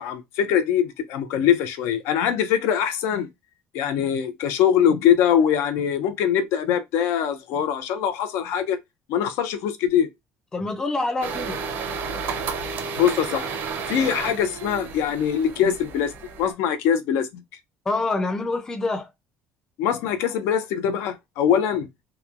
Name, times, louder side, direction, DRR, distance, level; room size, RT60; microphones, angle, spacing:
voice 1, 0.0-3.3 3.7-8.8 9.1-10.1 13.0-13.5 13.9-16.1 16.4-17.3 19.8-21.9, left 9 dB, 75° left, 0.5 m, -22 dB
voice 2, 10.5-11.6 17.9-19.1, left 2 dB, 10° left, 0.4 m, -26 dB
sound 1, 11.2-16.5, right 5 dB, 50° right, 0.5 m, -32 dB
2.9 x 2.2 x 2.4 m
cardioid pair, 165°, 5 cm